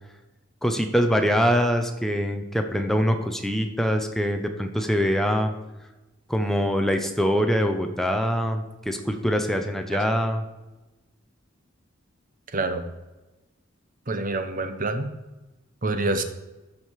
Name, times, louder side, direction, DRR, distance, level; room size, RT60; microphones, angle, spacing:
voice 1, 0.6-5.5 6.3-10.4, equal, ahead, 5 dB, 0.8 m, -24 dB
voice 2, 12.5-12.8 14.1-15.1 15.8-16.2, right 2 dB, 40° right, 8 dB, 0.9 m, -27 dB
13.5 x 5.1 x 4.7 m, 1.1 s
head